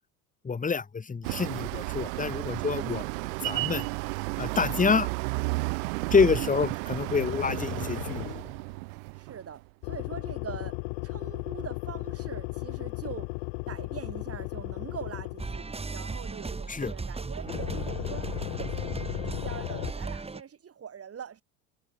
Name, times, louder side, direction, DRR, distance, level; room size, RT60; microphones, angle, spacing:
voice 1, 0.4-3.0 3.4-3.9 4.4-5.1 6.1-8.4 16.7-16.9, left 5 dB, 15° left, 2.0 m, -27 dB
sound 1, 1.2-9.6, right 27 dB, 55° right, 0.8 m, -33 dB
voice 2, 2.7-3.1 6.2-6.5 9.1-13.3 13.7-21.4, right 8 dB, 30° right, 7.2 m, -43 dB
sound 2, 7.2-8.6 9.8-15.6 17.5-19.9, left 37 dB, 50° left, 0.8 m, -36 dB
sound 3, 15.4-20.4, right 3 dB, 10° right, 2.5 m, -36 dB
figure-of-eight pair, 75°, 47 cm